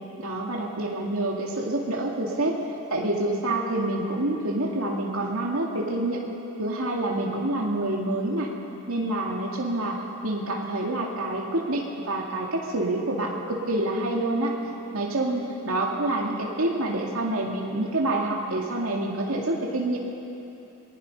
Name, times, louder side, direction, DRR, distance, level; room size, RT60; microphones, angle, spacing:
voice 1, 0.2-2.6 2.9-6.2 6.6-8.5 8.9-10.0 10.2-14.5 14.9-20.0, right 1 dB, 80° right, -1 dB, 2.2 m, -27 dB
26.5 x 20.0 x 5.4 m, 2.9 s
head